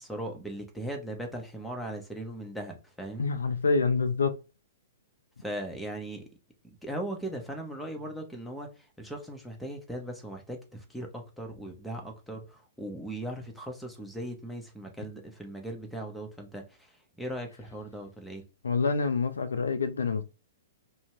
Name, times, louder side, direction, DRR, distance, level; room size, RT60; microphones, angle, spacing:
voice 1, 0.0-3.3 5.4-6.3 6.6-18.4, right 1 dB, ahead, 0.8 m, -38 dB
voice 2, 3.2-4.4 18.6-20.2, left 4 dB, 75° left, 0.4 m, -27 dB
2.6 x 2.1 x 3.0 m
figure-of-eight pair, 115°, 0 cm